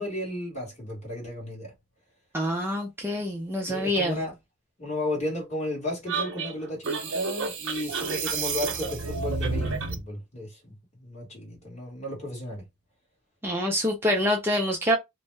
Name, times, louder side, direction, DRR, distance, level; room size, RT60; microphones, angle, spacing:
voice 1, 0.0-1.7 3.7-4.3 4.8-10.7 11.0-12.6, left 1 dB, 30° left, 1.4 m, -34 dB
voice 2, 2.3-4.2 13.4-15.0, equal, 10° right, 0.4 m, -26 dB
sound 1, 6.1-10.0, right 4 dB, 55° right, 0.6 m, -30 dB
2.6 x 2.1 x 3.2 m
head